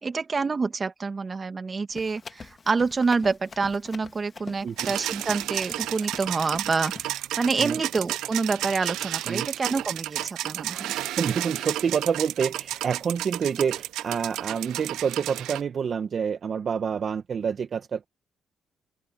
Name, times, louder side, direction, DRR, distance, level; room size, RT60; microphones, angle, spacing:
voice 1, 0.0-10.9, right 4 dB, 35° right, 2.3 m, -27 dB
Run, 1.9-7.1, left 5 dB, 35° left, 2.3 m, -45 dB
sound 1, 4.8-15.6, right 14 dB, 90° right, 0.7 m, -32 dB
voice 2, 11.1-18.0, right 7 dB, 50° right, 1.3 m, -27 dB
open air
cardioid pair, 90°, 0 cm